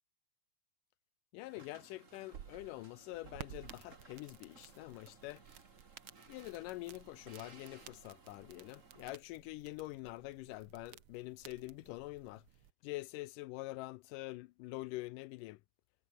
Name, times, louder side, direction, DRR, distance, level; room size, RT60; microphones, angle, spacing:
voice 1, 1.3-5.4 6.3-12.4 12.8-15.6, left 19 dB, 85° left, 1.9 m, -45 dB
sound 1, 1.5-9.2, right 3 dB, 25° right, 2.6 m, -61 dB
sound 2, 2.1-12.7, right 10 dB, 90° right, 1.1 m, -56 dB
omnidirectional pair, 4.3 m